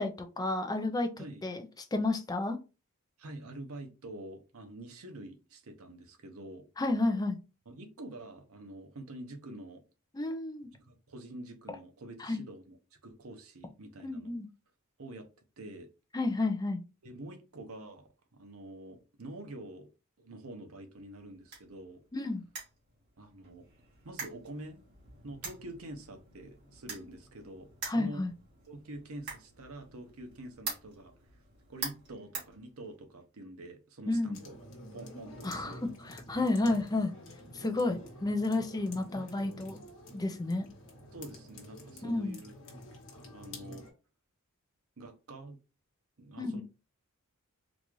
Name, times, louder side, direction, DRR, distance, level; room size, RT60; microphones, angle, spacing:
voice 1, 0.0-1.6 1.9-2.6 6.8-7.4 10.1-10.7 12.2-12.4 14.0-14.5 16.1-16.8 22.1-22.4 27.9-28.3 34.1-34.4 35.4-35.8 36.1-37.1 37.5-39.8 40.1-40.7 42.0-42.4 46.4-46.6, left 2 dB, 15° left, 0.4 m, -31 dB
voice 2, 3.2-6.6 7.7-9.8 10.7-12.8 13.0-14.4 15.0-15.3 15.6-15.9 17.0-19.9 20.2-22.0 23.2-23.7 24.0-24.8 25.2-28.2 28.7-31.4 31.7-35.9 36.7-36.8 39.4-39.6 41.1-42.5 43.3-43.9 45.0-45.6 46.2-46.6, right 1 dB, 70° right, 0.8 m, -46 dB
sound 1, 20.9-33.2, right 4 dB, 50° right, 1.9 m, -46 dB
sound 2, 34.3-43.9, left 1 dB, 60° left, 1.2 m, -49 dB
4.0 x 2.4 x 3.0 m
head